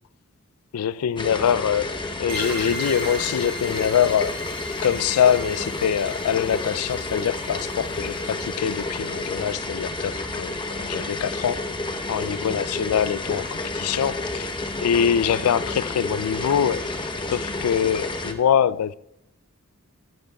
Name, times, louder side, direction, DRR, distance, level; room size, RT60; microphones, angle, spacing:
voice 1, 0.7-4.4 4.8-11.7 12.1-14.5 14.8-16.8 17.3-18.9, left 8 dB, 80° left, 0.4 m, -24 dB
sound 1, 1.2-18.3, left 2 dB, 20° left, 0.9 m, -30 dB
sound 2, 2.3-9.5, equal, 25° right, 4.5 m, -38 dB
15.0 x 14.0 x 2.3 m
head